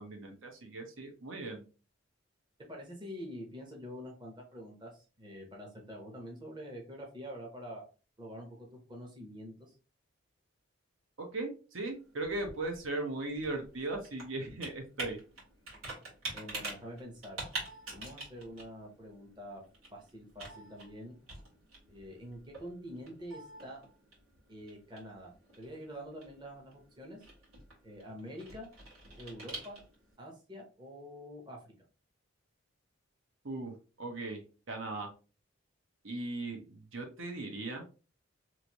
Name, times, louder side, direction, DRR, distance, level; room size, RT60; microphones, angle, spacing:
voice 1, 0.0-1.6 11.2-15.2 33.4-34.4 34.7-35.1 36.0-37.8, right 2 dB, 70° right, 3 dB, 0.8 m, -38 dB
voice 2, 2.6-7.8 8.2-9.7 16.3-17.4 17.9-19.6 19.9-21.2 21.9-23.8 24.5-27.2 27.8-28.7 29.2-29.8 30.2-31.7, equal, 20° right, 0 dB, 0.7 m, -46 dB
Computer keyboard, 11.9-30.1, right 2 dB, 85° right, 1.6 m, -47 dB
3.0 x 2.6 x 2.9 m, 0.34 s
head